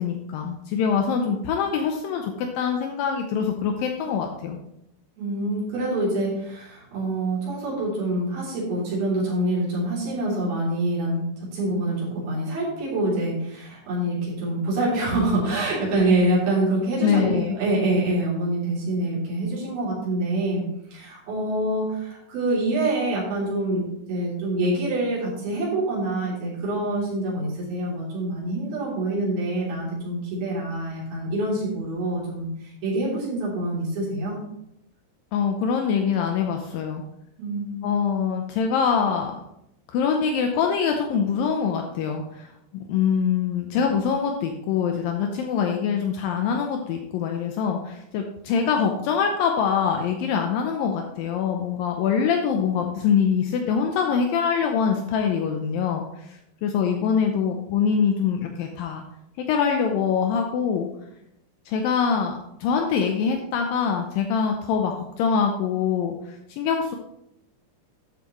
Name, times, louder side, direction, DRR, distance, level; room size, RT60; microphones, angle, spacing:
voice 1, 0.0-4.6 17.0-17.6 35.3-37.0 37.8-39.3 39.9-42.5 42.7-59.0 59.5-60.9 61.7-67.0, left 6 dB, 75° left, 3 dB, 2.4 m, -24 dB
voice 2, 5.2-20.6 20.9-23.8 24.1-34.4 37.4-37.9, right 1 dB, 80° right, -7 dB, 5.1 m, -26 dB
12.0 x 8.2 x 3.1 m, 0.80 s
omnidirectional pair, 4.2 m